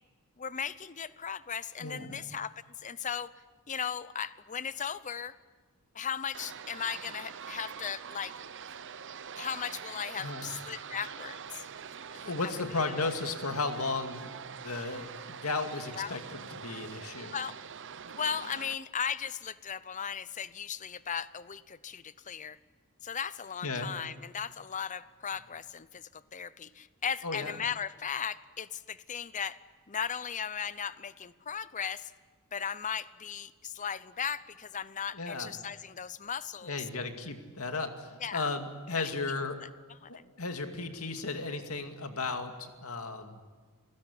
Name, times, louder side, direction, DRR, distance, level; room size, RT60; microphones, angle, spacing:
voice 1, 0.4-2.5 2.8-3.3 3.7-5.3 5.9-8.3 9.4-11.6 12.1-12.3 12.9-13.0 15.9-16.2 17.3-17.6 18.2-22.6 23.0-29.6 29.9-32.1 32.5-36.7 38.2-38.5 39.0-39.1 40.0-40.3, left 7 dB, 35° left, 16 dB, 0.7 m, -37 dB
voice 2, 1.8-2.2 10.2-10.5 12.3-17.4 23.6-23.9 27.2-27.6 35.1-35.5 36.6-39.6 40.1-43.4, left 3 dB, 70° left, 6 dB, 2.3 m, -35 dB
sound 1, 6.3-18.7, right 7 dB, 55° right, 0.8 m, -44 dB
28.5 x 16.5 x 10.0 m, 1.4 s
head